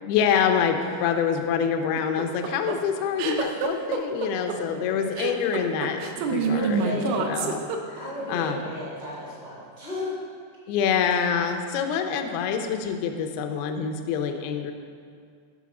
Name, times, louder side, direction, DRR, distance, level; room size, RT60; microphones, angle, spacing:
voice 1, 0.0-7.6 7.9-8.6 10.7-14.7, left 7 dB, 90° left, 5 dB, 2.1 m, -26 dB
sound 1, 2.0-8.2, right 5 dB, 80° right, 2.6 m, -27 dB
voice 2, 6.4-7.3 7.9-10.1, left 1 dB, 70° left, -9 dB, 0.5 m, -34 dB
7.0 x 4.7 x 6.1 m, 2.1 s
omnidirectional pair, 5.1 m